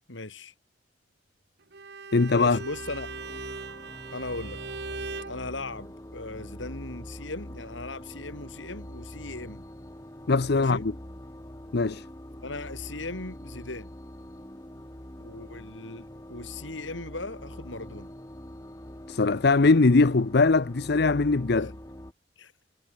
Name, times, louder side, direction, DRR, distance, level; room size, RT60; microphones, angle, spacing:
voice 1, 0.1-0.5 2.2-3.1 4.1-4.6 5.3-9.6 10.5-10.8 12.4-13.9 15.2-18.1 21.5-21.7 22.4-22.5, left 2 dB, 80° left, 3.8 m, -38 dB
Bowed string instrument, 1.7-5.4, right 4 dB, 60° right, 1.5 m, -39 dB
voice 2, 2.1-2.6 10.3-10.8 11.7-12.0 19.1-21.7, left 3 dB, 55° left, 0.7 m, -21 dB
sound 1, 2.3-22.1, equal, 15° left, 2.3 m, -44 dB
head